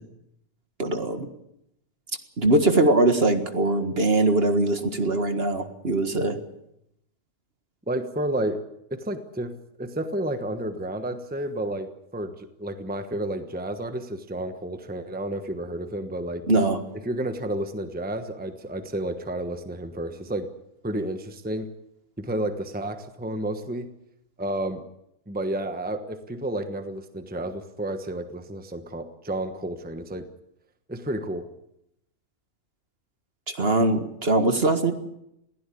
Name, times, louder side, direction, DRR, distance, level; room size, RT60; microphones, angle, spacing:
voice 1, 0.8-1.3 2.4-6.4 16.5-16.8 33.5-34.9, right 2 dB, 45° right, 8 dB, 1.9 m, -22 dB
voice 2, 7.9-8.6 8.9-11.9 12.1-16.4 17.0-20.5 20.8-21.7 22.2-23.9 24.4-24.8 25.3-30.3 30.9-31.5, right 1 dB, 5° right, 8 dB, 1.1 m, -31 dB
21.5 x 16.0 x 8.6 m, 0.80 s
omnidirectional pair, 1.4 m